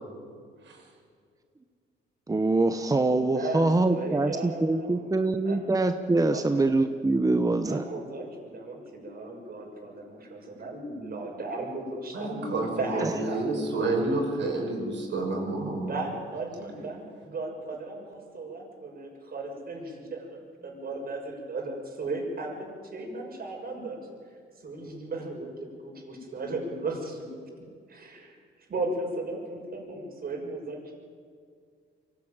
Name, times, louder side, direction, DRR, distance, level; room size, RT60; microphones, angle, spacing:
voice 1, 2.3-7.9 13.0-13.1, right 2 dB, 15° right, 8 dB, 1.0 m, -24 dB
voice 2, 3.3-5.7 6.3-6.6 7.6-13.7 15.9-24.0 24.6-27.4 27.9-28.4 28.7-30.9, right 2 dB, 50° right, 1 dB, 6.3 m, -36 dB
voice 3, 12.1-15.9, right 2 dB, 65° right, 0 dB, 6.5 m, -29 dB
23.5 x 16.0 x 9.0 m, 2.1 s
cardioid pair, 90°, 20 cm